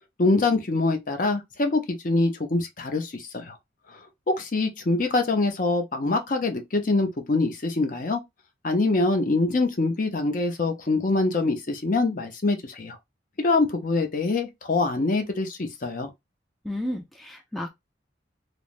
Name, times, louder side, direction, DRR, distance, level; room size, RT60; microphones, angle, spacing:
voice 1, 0.2-3.5 4.3-8.2 8.6-13.0 13.4-16.1, left 3 dB, 45° left, 0.6 m, -24 dB
voice 2, 16.6-17.7, left 1 dB, ahead, 0.4 m, -32 dB
3.2 x 2.0 x 2.4 m
head